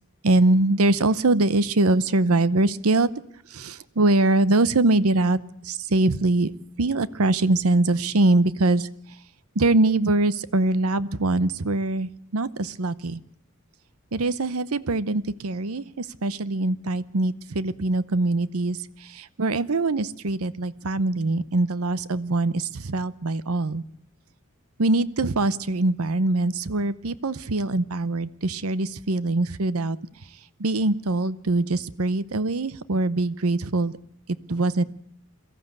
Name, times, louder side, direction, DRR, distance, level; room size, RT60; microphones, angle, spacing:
voice 1, 0.2-3.1 3.5-5.4 5.6-6.5 6.8-8.9 9.6-13.2 14.1-18.8 19.1-23.8 24.8-30.0 30.6-33.9 34.5-34.8, right 2 dB, 90° right, 17 dB, 0.8 m, -23 dB
22.5 x 14.5 x 8.1 m, 0.70 s
head